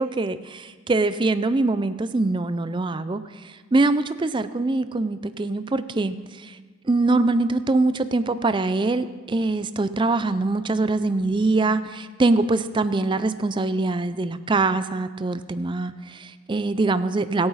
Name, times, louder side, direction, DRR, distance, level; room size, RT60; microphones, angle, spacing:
voice 1, 0.0-6.6 6.8-17.5, right 3 dB, 20° right, 12 dB, 0.4 m, -23 dB
22.0 x 8.7 x 4.1 m, 1.4 s
head